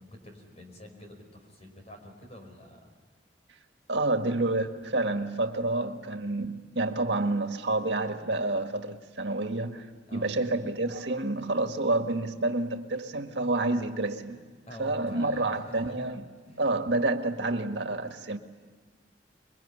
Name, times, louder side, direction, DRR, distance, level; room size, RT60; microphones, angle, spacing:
voice 1, 0.0-2.9 10.1-10.4 14.3-16.0 16.4-16.7 17.2-17.4, left 1 dB, 40° left, 4 dB, 5.3 m, -47 dB
voice 2, 3.9-9.9 10.1-14.4 14.8-16.3 16.6-18.4, right 2 dB, 85° right, 6 dB, 1.7 m, -29 dB
26.5 x 22.5 x 9.9 m, 1.4 s
head